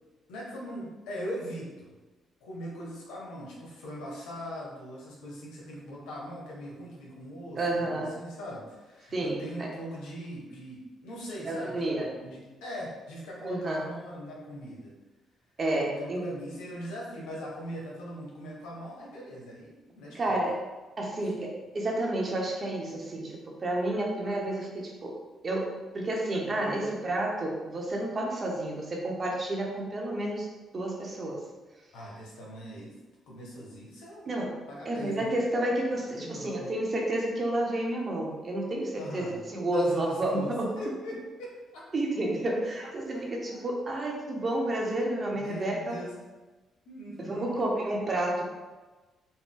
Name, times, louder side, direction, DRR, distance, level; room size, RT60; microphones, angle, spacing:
voice 1, 0.3-1.9 2.4-14.9 15.8-20.4 21.2-21.3 26.5-27.0 31.9-32.9 33.3-34.3 34.7-35.3 36.1-36.7 39.0-40.5 40.8-41.8 43.5-43.7 45.4-46.2 46.8-47.7, equal, 90° left, -4 dB, 1.0 m, -41 dB
voice 2, 7.6-8.2 9.1-9.7 11.4-12.1 13.4-13.9 15.6-16.2 20.1-20.6 21.0-30.5 30.7-31.4 34.3-34.6 34.8-40.7 41.9-46.0 47.2-48.4, right 1 dB, 40° right, -1 dB, 0.9 m, -30 dB
4.2 x 2.2 x 3.6 m, 1.2 s
cardioid pair, 80°, 0 cm